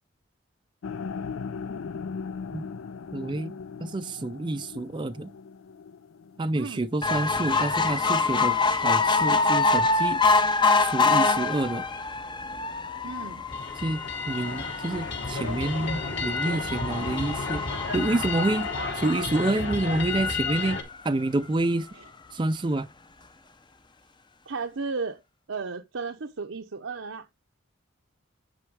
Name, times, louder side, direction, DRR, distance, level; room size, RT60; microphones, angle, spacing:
sound 1, 0.8-7.0, left 5 dB, 80° left, 0.4 m, -38 dB
voice 1, 3.1-3.5 3.8-5.3 6.4-8.6 8.8-10.2 10.8-11.8 13.8-17.6 17.9-18.7 18.9-20.8 21.0-21.9 22.3-22.9, right 2 dB, 25° right, 0.4 m, -28 dB
voice 2, 6.5-6.9 13.0-13.4 18.8-18.9 21.9-22.1 24.5-25.2 25.5-27.3, right 4 dB, 70° right, 0.7 m, -34 dB
sound 2, 7.0-19.6 20.2-20.3 20.6-20.7 20.9-21.0, left 4 dB, 20° left, 0.6 m, -26 dB
sound 3, 13.5-20.8, left 4 dB, 55° left, 2.9 m, -31 dB
9.9 x 4.3 x 4.7 m
head